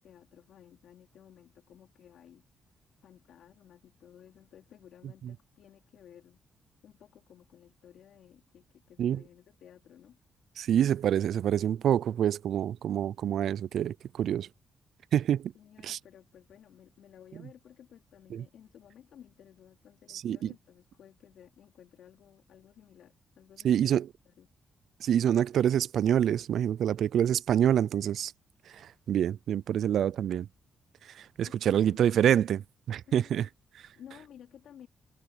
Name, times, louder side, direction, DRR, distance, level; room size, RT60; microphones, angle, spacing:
voice 1, 0.0-2.4 3.0-6.4 6.8-10.2 11.2-11.3 15.5-24.5 31.2-32.0 33.1-33.4 34.0-34.9, left 10 dB, 80° left, 3.8 m, -55 dB
voice 2, 10.6-14.5 15.1-15.5 15.8-16.0 18.3-18.4 20.2-20.5 23.6-24.1 25.0-28.3 29.1-30.5 31.4-32.6 32.9-33.5, right 10 dB, 70° right, 0.3 m, -26 dB
cardioid pair, 145°, 0 cm